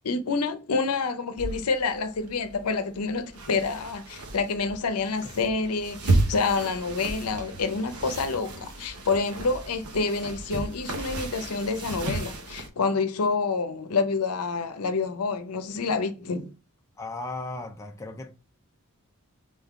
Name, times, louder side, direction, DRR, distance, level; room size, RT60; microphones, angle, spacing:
voice 1, 0.0-16.5, left 4 dB, 90° left, 0.7 m, -28 dB
sound 1, 1.4-12.7, right 2 dB, 85° right, 1.0 m, -33 dB
voice 2, 17.0-18.3, left 2 dB, 15° left, 0.4 m, -36 dB
3.9 x 3.7 x 3.5 m
head